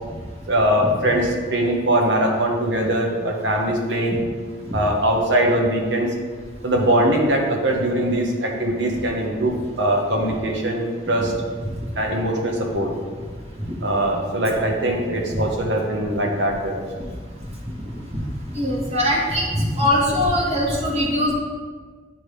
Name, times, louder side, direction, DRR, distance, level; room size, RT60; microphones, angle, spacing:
voice 1, 0.5-4.2 4.7-6.1 6.6-11.3 12.0-12.9 13.8-16.9, right 1 dB, 70° right, 0 dB, 1.2 m, -21 dB
voice 2, 18.6-19.4 19.8-21.3, left 1 dB, 35° right, -3 dB, 1.5 m, -21 dB
9.7 x 3.6 x 3.3 m, 1.5 s
head